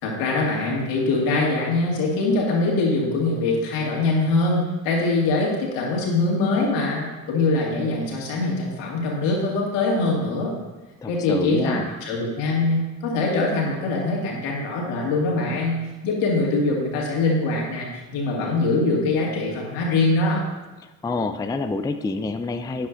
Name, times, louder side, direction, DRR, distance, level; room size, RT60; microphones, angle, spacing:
voice 1, 0.0-10.5 11.1-20.4, left 2 dB, 70° left, -2 dB, 2.4 m, -23 dB
voice 2, 11.0-11.9 20.8-22.9, left 3 dB, 10° left, 8 dB, 0.4 m, -28 dB
13.0 x 9.6 x 2.6 m, 1.2 s
figure-of-eight pair, 45°, 49 cm